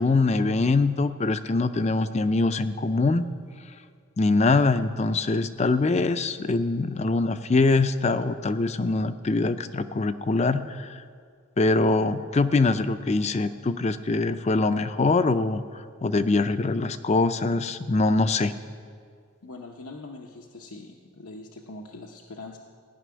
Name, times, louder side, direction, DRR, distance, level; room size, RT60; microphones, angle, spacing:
voice 1, 0.0-3.3 4.2-11.0 11.6-15.6 16.0-18.5, left 3 dB, 30° left, 11 dB, 0.4 m, -23 dB
voice 2, 19.4-22.6, left 2 dB, 90° left, 0 dB, 0.9 m, -42 dB
16.0 x 5.9 x 9.7 m, 2.1 s
head